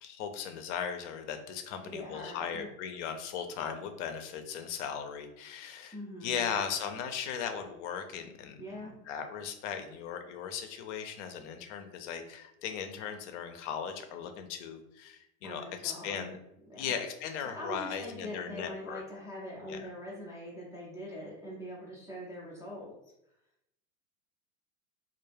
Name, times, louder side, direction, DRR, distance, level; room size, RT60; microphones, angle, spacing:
voice 1, 0.0-16.4 16.8-19.0 19.7-19.8, left 7 dB, 55° left, 7 dB, 0.5 m, -38 dB
voice 2, 1.8-2.7 5.9-6.4 8.6-9.0 15.4-16.4 16.7-16.9 17.5-22.9, equal, 10° right, -8 dB, 0.4 m, -43 dB
2.2 x 2.0 x 3.2 m, 0.82 s
hypercardioid pair, 110°, 42 cm